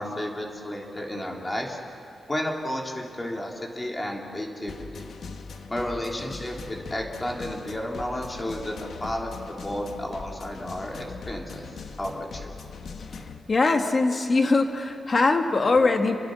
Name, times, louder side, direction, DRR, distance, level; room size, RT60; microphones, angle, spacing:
voice 1, 0.0-1.8 2.3-5.1 5.7-11.7 12.0-12.5, left 1 dB, 20° left, 0 dB, 3.5 m, -32 dB
sound 1, 4.7-13.4, left 4 dB, 70° left, 1.7 m, -41 dB
voice 2, 13.5-16.2, left 3 dB, 40° left, 5 dB, 2.1 m, -21 dB
30.0 x 24.5 x 6.6 m, 3.0 s
wide cardioid pair, 115°, 0 cm